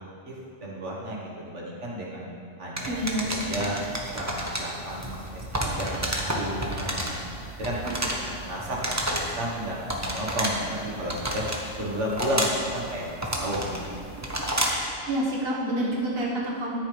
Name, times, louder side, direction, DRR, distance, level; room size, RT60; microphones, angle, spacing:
voice 1, 0.3-2.3 2.6-3.0 3.3-3.8 4.1-5.1 5.3-7.2 7.6-8.8 9.1-11.4 11.8-14.1, equal, 70° right, -4 dB, 1.8 m, -32 dB
sound 1, 2.8-14.9, right 1 dB, 15° right, 1.1 m, -31 dB
voice 2, 2.9-3.5 7.8-7.9 15.1-16.8, right 1 dB, 55° right, -4 dB, 1.7 m, -28 dB
13.5 x 10.0 x 3.4 m, 2.5 s
omnidirectional pair, 1.3 m